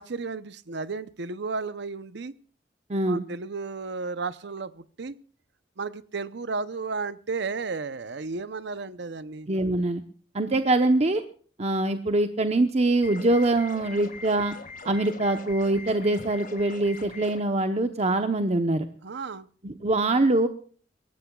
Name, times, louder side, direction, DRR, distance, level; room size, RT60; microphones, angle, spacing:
voice 1, 0.0-2.3 3.1-5.1 5.8-9.5 19.0-19.5, right 4 dB, 65° right, 15 dB, 0.7 m, -33 dB
voice 2, 2.9-3.2 9.5-10.0 10.3-11.2 11.6-14.5 14.8-18.9 19.6-20.5, right 2 dB, 35° right, 7 dB, 0.9 m, -24 dB
sound 1, 13.0-17.4, left 3 dB, 50° left, 1.9 m, -42 dB
22.5 x 18.0 x 2.3 m, 0.44 s
head